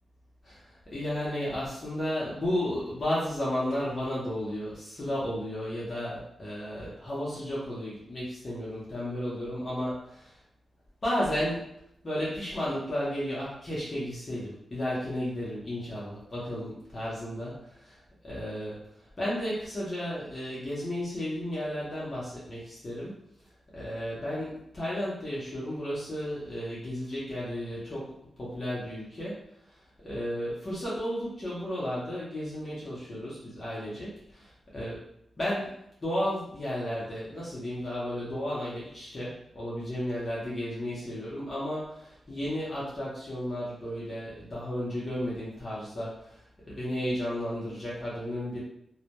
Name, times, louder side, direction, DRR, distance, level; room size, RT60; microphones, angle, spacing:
voice 1, 0.4-10.4 11.0-11.7 12.0-23.2 23.7-35.0 35.4-35.7 36.0-48.6, equal, 30° left, -8 dB, 0.6 m, -33 dB
2.1 x 2.1 x 2.8 m, 0.75 s
wide cardioid pair, 155°, 0 cm